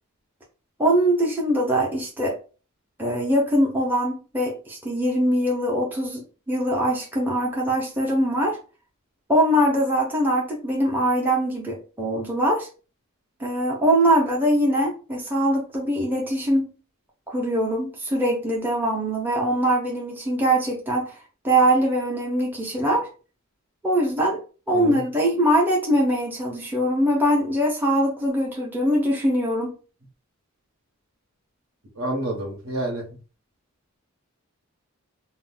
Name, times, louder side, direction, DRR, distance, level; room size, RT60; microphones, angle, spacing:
voice 1, 0.8-2.4 3.0-8.6 9.3-12.7 13.4-16.7 17.3-21.2 21.4-23.1 23.8-24.4 24.7-29.7, right 1 dB, 10° right, 0.6 m, -22 dB
voice 2, 24.7-25.0 32.0-33.1, right 1 dB, 65° right, 0.9 m, -29 dB
2.4 x 2.0 x 3.8 m
head